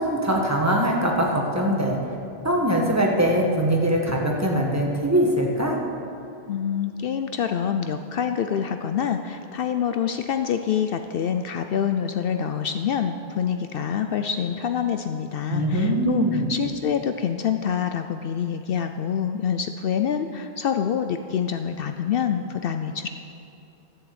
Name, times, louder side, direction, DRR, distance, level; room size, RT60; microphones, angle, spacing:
voice 1, 0.0-2.0 2.4-5.8 15.5-16.5, equal, 15° right, -2 dB, 1.5 m, -22 dB
voice 2, 6.5-23.1, left 8 dB, 65° left, 7 dB, 0.7 m, -26 dB
13.5 x 7.5 x 7.9 m, 2.7 s
omnidirectional pair, 1.1 m